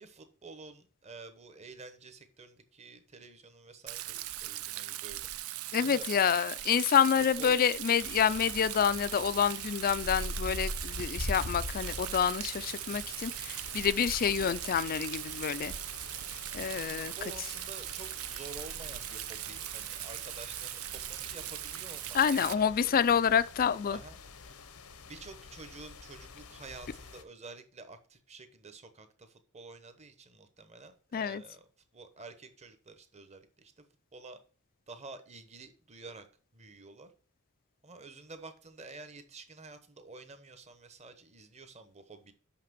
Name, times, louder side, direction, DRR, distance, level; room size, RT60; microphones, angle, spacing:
voice 1, 0.0-5.3 5.7-6.4 7.4-7.6 16.7-23.1 23.9-24.2 25.0-31.7 31.9-33.8 34.1-34.4 34.9-36.3 36.5-37.1 37.8-42.3, right 3 dB, 30° right, 1.0 m, -49 dB
Rain, 3.9-22.5, right 14 dB, 70° right, 0.4 m, -40 dB
voice 2, 5.7-15.7 16.5-17.1 22.1-24.0 31.1-31.4, left 7 dB, 40° left, 0.4 m, -28 dB
sound 1, 8.0-27.2, left 2 dB, 85° left, 0.9 m, -44 dB
5.9 x 5.8 x 5.9 m
head